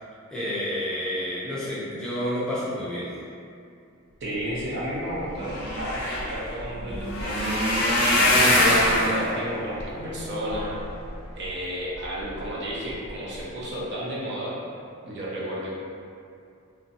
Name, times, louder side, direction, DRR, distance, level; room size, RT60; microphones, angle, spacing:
voice 1, 0.3-3.1, equal, 5° left, -10 dB, 0.4 m, -29 dB
voice 2, 4.2-10.7 11.3-14.5 15.0-15.7, right 1 dB, 55° right, -6 dB, 0.7 m, -32 dB
sound 1, 5.1-11.5 12.0-12.5 12.9-13.1 13.4-13.5, left 1 dB, 50° left, 0.6 m, -24 dB
2.6 x 2.2 x 3.8 m, 2.4 s
head